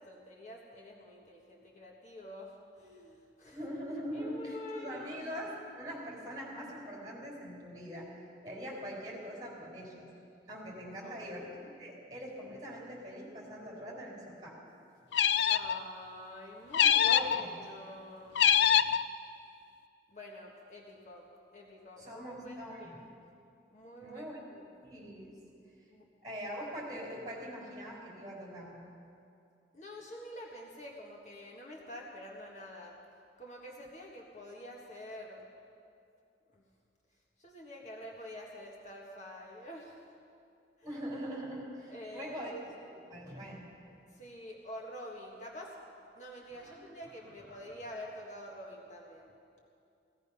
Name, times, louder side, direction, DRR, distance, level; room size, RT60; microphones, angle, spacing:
voice 1, 0.0-3.6 4.1-5.2 11.0-11.4 15.5-18.4 20.1-21.3 21.5-23.0 23.7-24.7 25.9-26.0 29.7-33.0 33.4-35.5 36.5-36.6 37.4-40.1 40.8-40.9 41.9-42.5 44.1-45.8 46.1-49.3, left 1 dB, 40° left, -1 dB, 1.5 m, -47 dB
voice 2, 3.5-10.1 10.5-14.5 16.8-17.6 22.0-23.1 24.0-24.4 24.8-25.4 26.2-28.8 40.8-42.7 43.1-43.6 46.5-46.8 47.5-47.6, equal, 20° right, -3 dB, 4.5 m, -42 dB
sound 1, 15.1-15.8 16.7-17.4 18.3-19.0, left 8 dB, 70° left, 0.4 m, -24 dB
17.0 x 15.5 x 5.6 m, 2.5 s
head